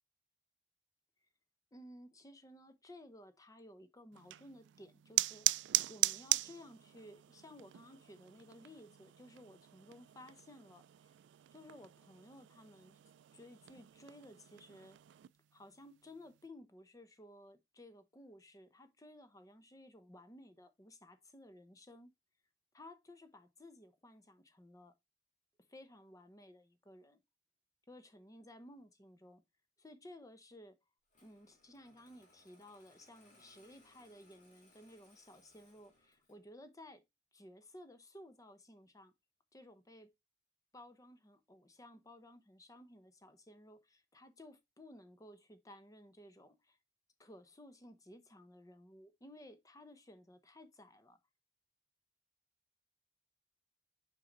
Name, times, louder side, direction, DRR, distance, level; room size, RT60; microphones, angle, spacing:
voice 1, 1.7-5.5 5.9-11.1 11.5-13.0 13.3-15.0 15.5-22.1 22.7-24.9 25.7-27.2 27.9-29.4 29.8-30.8 31.2-37.0 37.3-39.1 39.5-40.1 40.7-46.8 47.2-51.2, left 1 dB, 20° left, 0.8 m, -56 dB
sound 1, 4.1-15.3, right 17 dB, 85° right, 0.3 m, -40 dB
Engine starting, 31.1-36.5, left 2 dB, 45° left, 2.7 m, -68 dB
6.3 x 5.2 x 3.9 m
head